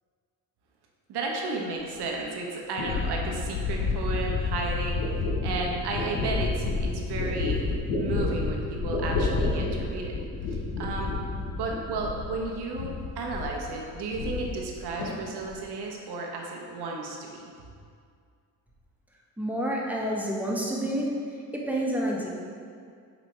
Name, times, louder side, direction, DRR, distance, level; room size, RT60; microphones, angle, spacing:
voice 1, 1.1-7.6 8.0-10.2 10.5-11.1 11.5-17.4, right 3 dB, 55° right, 0 dB, 1.2 m, -33 dB
sound 1, 2.0-2.1 2.8-12.5 12.7-13.6 13.9-14.7 15.0-15.5, left 3 dB, 75° left, 1.2 m, -29 dB
voice 2, 19.4-21.1 21.5-22.3, right 1 dB, 5° right, -3 dB, 1.3 m, -28 dB
7.3 x 4.0 x 3.3 m, 2.3 s
hypercardioid pair, 55°, 49 cm